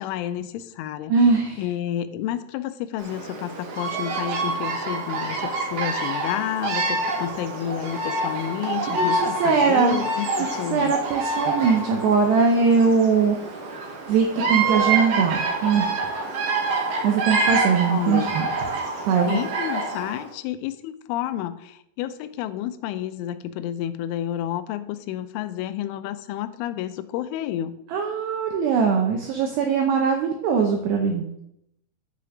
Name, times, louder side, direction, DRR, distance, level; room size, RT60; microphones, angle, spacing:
voice 1, 0.0-1.1 1.6-11.0 17.9-18.3 19.3-27.8, left 11 dB, 85° left, 11 dB, 2.9 m, -30 dB
voice 2, 1.1-1.6 8.9-10.0 10.4-13.4 13.7-16.0 17.0-18.5 19.0-19.4 27.9-31.3, right 5 dB, 90° right, 2 dB, 2.3 m, -21 dB
Bird vocalization bird call bird song, 3.0-20.2, right 3 dB, 65° right, 2.1 m, -27 dB
9.1 x 5.1 x 5.9 m, 0.79 s
omnidirectional pair, 5.9 m